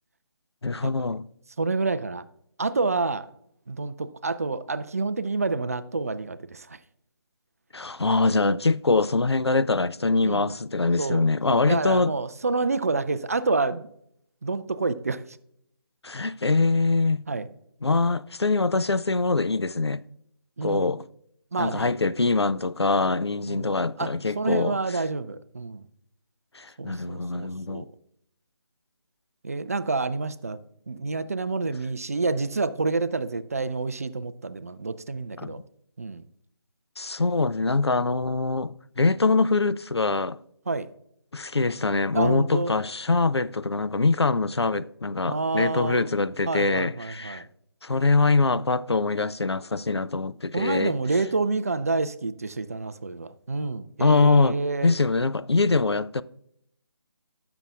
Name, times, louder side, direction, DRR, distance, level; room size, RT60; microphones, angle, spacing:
voice 1, 0.6-1.2 7.7-12.1 16.0-17.2 17.8-20.0 20.6-21.0 21.6-24.8 26.5-27.9 35.4-35.6 37.0-40.4 41.3-47.4 47.8-50.9 54.0-54.6 54.8-56.2, left 3 dB, 90° left, 0.4 m, -23 dB
voice 2, 1.6-2.2 2.6-3.3 3.7-6.8 10.2-10.5 11.0-13.9 14.4-15.2 17.3-17.5 20.6-20.9 21.5-22.0 23.5-24.1 24.3-25.8 26.8-27.9 29.4-30.6 30.9-35.6 36.0-36.3 40.7-40.9 42.1-42.8 45.2-46.1 46.5-47.5 50.5-54.9, right 3 dB, 35° right, 0.4 m, -28 dB
12.0 x 6.9 x 2.4 m
figure-of-eight pair, 155°, 13 cm